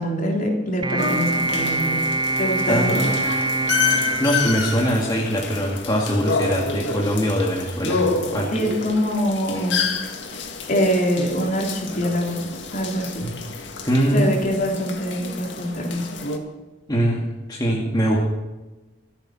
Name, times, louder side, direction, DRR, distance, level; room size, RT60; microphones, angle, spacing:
voice 1, 0.0-2.0 2.4-3.0 8.5-9.9 10.7-12.4 12.7-13.2 14.1-16.1, equal, 50° left, -1 dB, 3.7 m, -24 dB
sound 1, 0.8-5.3, right 2 dB, 25° right, 0.4 m, -25 dB
sound 2, 1.0-16.4, left 4 dB, 80° left, 1.9 m, -29 dB
voice 2, 2.7-3.1 4.0-8.0 8.3-8.5 13.2-13.3 13.9-14.3 16.9-18.2, equal, 25° left, -3 dB, 2.2 m, -22 dB
26.0 x 8.9 x 4.4 m, 1.1 s
head